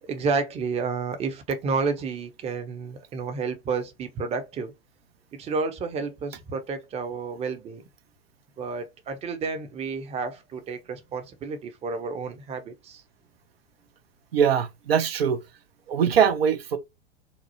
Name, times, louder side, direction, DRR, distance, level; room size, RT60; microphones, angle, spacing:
voice 1, 0.0-4.7 5.3-7.8 8.6-13.0, right 4 dB, 20° right, 0.6 m, -30 dB
voice 2, 14.3-15.4 15.9-16.8, right 7 dB, 75° right, 0.6 m, -22 dB
2.8 x 2.0 x 2.7 m
figure-of-eight pair, 90°, 30 cm